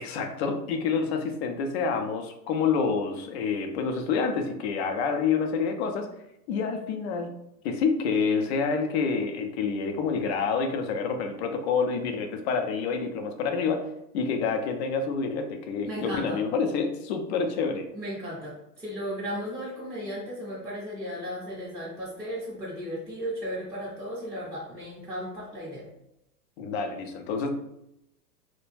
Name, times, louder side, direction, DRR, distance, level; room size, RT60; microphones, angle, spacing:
voice 1, 0.0-6.1 6.5-7.3 7.6-13.8 14.1-17.9 26.6-27.5, left 5 dB, 45° left, 5 dB, 0.4 m, -28 dB
voice 2, 15.8-16.4 17.9-25.9, equal, 5° right, -11 dB, 0.5 m, -35 dB
2.2 x 2.1 x 3.1 m, 0.83 s
hypercardioid pair, 120°, 48 cm